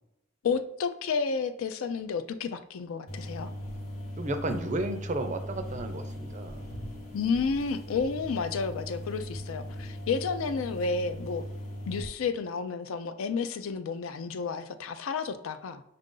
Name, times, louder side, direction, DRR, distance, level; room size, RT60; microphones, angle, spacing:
voice 1, 0.4-3.5 7.1-11.5 11.9-15.8, left 5 dB, 85° left, 11 dB, 0.4 m, -31 dB
sound 1, 3.1-12.1, equal, 35° left, 0.9 m, -39 dB
voice 2, 4.2-6.6, right 2 dB, 35° right, 8 dB, 0.4 m, -33 dB
5.4 x 2.5 x 3.8 m, 0.85 s
head